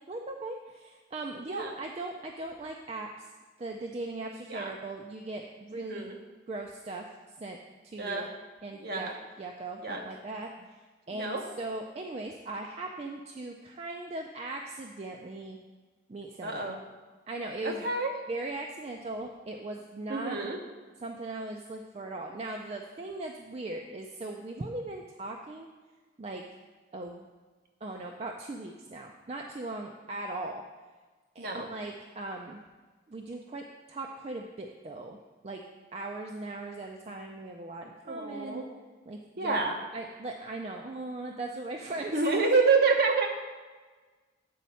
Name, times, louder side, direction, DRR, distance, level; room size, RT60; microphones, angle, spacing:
voice 1, 0.1-3.3 3.6-6.1 6.5-7.0 7.4-7.6 7.8-8.3 8.6-9.1 9.4-10.5 11.1-15.6 16.1-16.6 17.3-17.9 18.3-20.4 21.0-25.7 26.2-26.4 26.9-27.2 27.8-30.6 31.4-32.6 33.1-35.2 35.4-35.6 35.9-38.6 39.1-39.6 39.9-42.4, right 2 dB, 30° right, 2 dB, 0.4 m, -39 dB
voice 2, 5.7-6.2 8.0-8.3 8.8-9.1 9.8-10.0 11.1-11.4 16.4-16.8 17.6-18.1 20.1-20.6 31.4-31.7 38.1-38.6 39.4-39.8 42.1-43.3, right 4 dB, 50° right, 1 dB, 1.0 m, -28 dB
8.4 x 4.2 x 5.5 m, 1.4 s
head